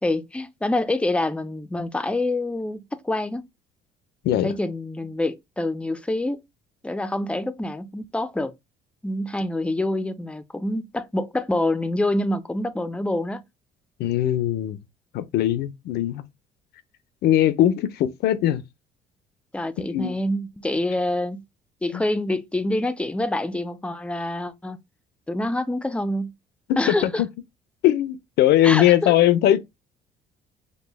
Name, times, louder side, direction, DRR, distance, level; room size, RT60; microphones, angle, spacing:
voice 1, 0.0-3.4 4.4-6.4 6.8-8.5 9.0-13.4 19.5-21.4 21.8-24.8 25.3-26.3 26.8-27.2 28.6-29.1, left 1 dB, 5° left, 0.5 m, -26 dB
voice 2, 14.0-14.8 15.1-16.2 17.2-18.6 19.9-20.1 21.9-22.0 27.0-27.3 27.8-29.6, left 12 dB, 75° left, 0.6 m, -20 dB
5.3 x 2.2 x 3.4 m
cardioid pair, 110°, 17 cm